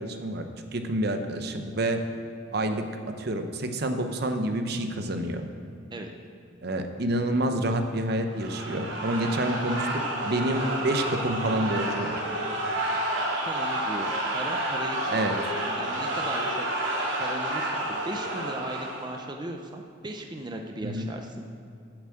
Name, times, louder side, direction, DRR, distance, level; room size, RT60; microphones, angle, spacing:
voice 1, 0.0-2.0 2.5-2.8 3.2-5.5 6.6-9.9 10.2-12.1 15.1-15.3 20.8-21.1, right 1 dB, 60° right, 6 dB, 0.8 m, -28 dB
sound 1, 8.3-19.3, right 1 dB, 85° right, 2.2 m, -30 dB
voice 2, 13.5-15.4 15.8-16.6 17.2-21.4, right 1 dB, 25° right, 3 dB, 0.6 m, -37 dB
8.1 x 7.1 x 7.6 m, 2.5 s
head